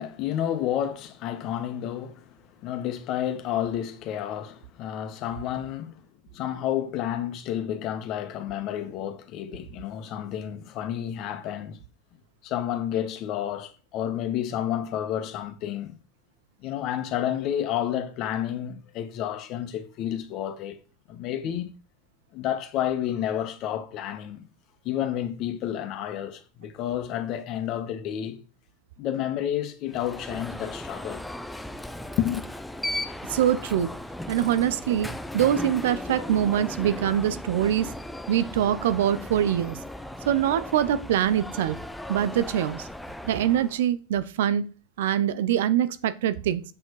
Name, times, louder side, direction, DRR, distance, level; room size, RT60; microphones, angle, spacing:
voice 1, 0.0-6.1 6.3-11.8 12.4-16.0 16.6-20.8 21.1-21.7 22.3-24.5 24.8-28.4 29.0-31.3 32.2-32.5, left 10 dB, 45° left, 1.7 m, -30 dB
Alarm, 29.9-43.8, left 1 dB, 5° left, 0.8 m, -37 dB
voice 2, 33.3-33.9 34.3-37.9 38.3-39.8 40.2-41.8 42.1-42.9 43.3-44.7 45.0-46.6, right 10 dB, 70° right, 0.8 m, -24 dB
7.7 x 6.5 x 4.8 m
hypercardioid pair, 100°, 0 cm